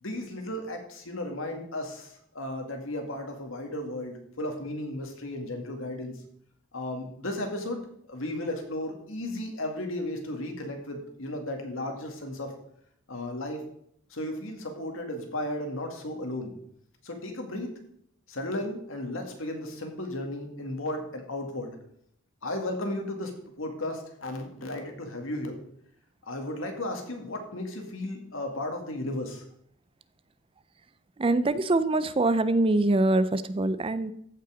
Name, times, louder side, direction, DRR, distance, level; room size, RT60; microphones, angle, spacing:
voice 1, 0.0-6.1 6.7-7.8 8.1-12.5 13.1-13.6 14.1-16.5 17.0-17.8 18.3-21.8 22.4-25.6 26.2-29.4, left 1 dB, 80° left, 4 dB, 2.1 m, -34 dB
voice 2, 31.2-34.1, right 2 dB, 25° right, 14 dB, 0.4 m, -24 dB
14.5 x 5.6 x 5.0 m, 0.71 s
head